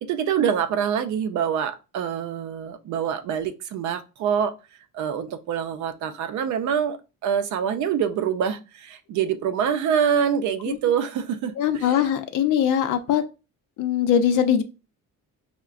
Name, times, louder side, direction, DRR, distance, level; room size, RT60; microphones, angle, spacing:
voice 1, 0.0-4.5 4.9-7.0 7.2-12.1, right 8 dB, 65° right, 10 dB, 0.5 m, -25 dB
voice 2, 11.6-13.2 13.8-14.6, left 9 dB, 70° left, 8 dB, 0.6 m, -21 dB
5.6 x 2.1 x 2.4 m, 0.29 s
cardioid pair, 165°, 32 cm